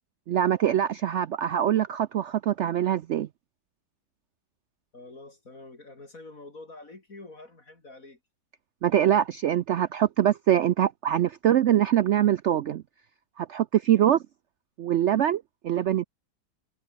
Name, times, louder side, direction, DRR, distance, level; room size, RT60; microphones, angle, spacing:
voice 1, 0.3-3.3 8.8-12.8 13.4-14.2 14.8-16.0, right 11 dB, 80° right, 0.6 m, -23 dB
voice 2, 4.9-8.2, left 2 dB, 50° left, 4.2 m, -46 dB
omnidirectional pair, 1.8 m